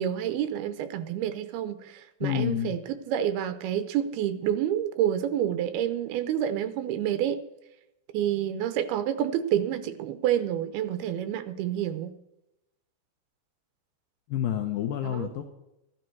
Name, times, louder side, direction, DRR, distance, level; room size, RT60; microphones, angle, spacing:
voice 1, 0.0-7.4 8.1-12.1 15.0-15.3, right 10 dB, 80° right, 2.8 m, -28 dB
voice 2, 2.2-2.8 14.3-15.4, left 11 dB, 75° left, 2.4 m, -28 dB
14.5 x 12.0 x 4.6 m
omnidirectional pair, 4.5 m